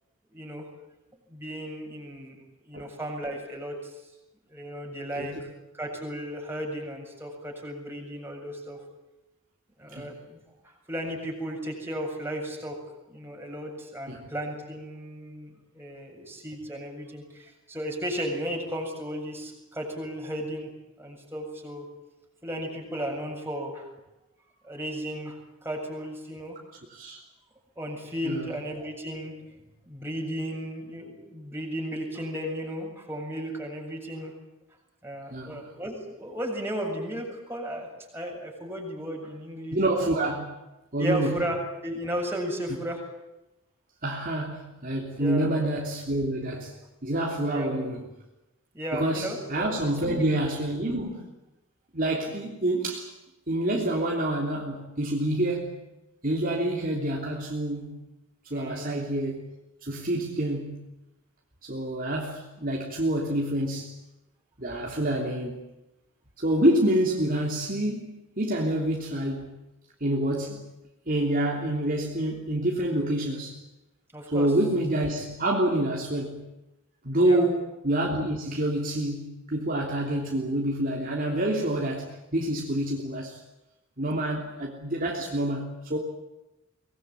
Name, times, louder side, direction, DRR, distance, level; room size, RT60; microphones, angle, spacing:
voice 1, 0.3-0.7 1.3-3.9 4.5-5.4 5.7-8.8 9.8-12.8 13.1-20.7 21.0-21.9 22.4-23.9 24.6-26.6 27.8-29.4 29.9-34.3 35.0-37.9 38.1-39.8 41.0-43.0 45.2-45.5 47.5-47.8 48.7-50.2 58.5-59.0 74.1-74.5 77.2-77.5, equal, 10° right, 7.4 m, -35 dB
voice 2, 39.7-40.5 40.9-41.4 44.0-46.7 47.0-48.0 48.9-51.3 51.9-53.1 53.5-55.8 56.2-58.0 58.4-59.4 59.8-60.8 61.6-63.9 64.6-65.6 66.4-69.5 70.0-70.6 71.1-73.6 74.3-76.4 77.0-83.4 84.0-86.0, right 1 dB, 40° right, 3.3 m, -27 dB
24.5 x 20.5 x 9.0 m
head